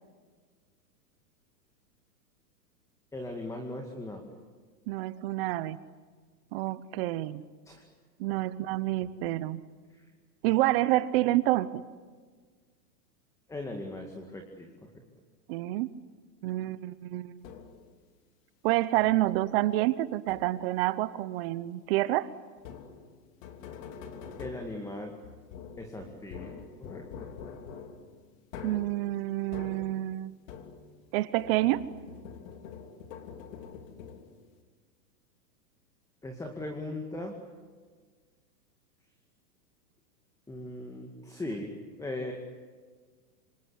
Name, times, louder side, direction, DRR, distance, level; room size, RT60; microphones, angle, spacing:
voice 1, 3.1-4.3 7.7-7.8 8.3-8.4 9.9-10.0 13.5-14.7 24.4-25.1 25.8-27.3 36.2-37.3 40.5-42.3, left 1 dB, 5° left, 3 dB, 2.2 m, -39 dB
voice 2, 4.9-5.8 6.5-7.4 8.2-9.6 10.4-11.8 15.5-15.9 16.4-17.3 18.6-22.3 28.6-30.3 31.1-31.9, right 16 dB, 35° right, 16 dB, 0.9 m, -28 dB
sound 1, 17.4-18.0 19.0-19.4 20.3-20.8 22.6-31.1 31.4-34.5, left 6 dB, 50° left, 3.2 m, -46 dB
26.5 x 25.5 x 8.2 m, 1.5 s
hypercardioid pair, 150°, 49 cm